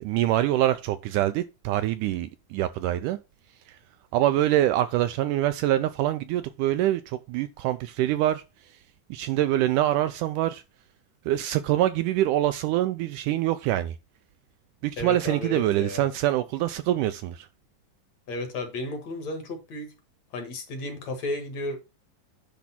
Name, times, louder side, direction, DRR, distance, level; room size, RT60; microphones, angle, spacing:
voice 1, 0.0-3.2 4.1-8.4 9.1-10.6 11.3-14.0 14.8-17.5, right 13 dB, 80° right, 1.9 m, -25 dB
voice 2, 15.0-16.1 18.3-19.9 20.3-21.8, left 2 dB, 55° left, 2.8 m, -33 dB
10.0 x 3.5 x 5.8 m
omnidirectional pair, 4.0 m